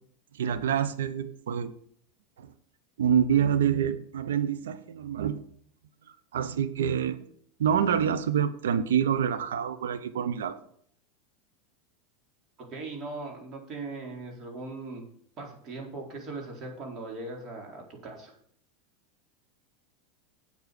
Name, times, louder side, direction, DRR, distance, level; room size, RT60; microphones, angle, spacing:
voice 1, 0.3-1.7 2.4-2.5 3.0-5.4 6.3-7.2 7.6-10.6, right 8 dB, 80° right, 11 dB, 1.0 m, -26 dB
voice 2, 12.6-15.1 15.4-18.3, right 3 dB, 40° right, 0 dB, 4.5 m, -39 dB
8.5 x 8.3 x 6.8 m, 0.63 s
hypercardioid pair, 90°, 0 cm